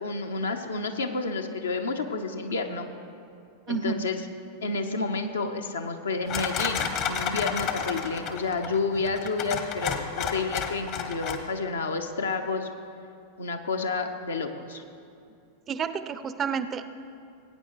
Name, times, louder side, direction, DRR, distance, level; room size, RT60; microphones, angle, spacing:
voice 1, 0.0-2.9 3.7-4.2 4.6-12.7 13.4-14.8, left 3 dB, 70° left, 5 dB, 0.8 m, -30 dB
voice 2, 3.7-4.1 15.7-16.9, right 6 dB, 25° right, 12 dB, 0.5 m, -30 dB
sound 1, 6.3-11.4, left 7 dB, 40° left, 1.0 m, -31 dB
19.0 x 9.1 x 3.0 m, 2.5 s
figure-of-eight pair, 90°, 0 cm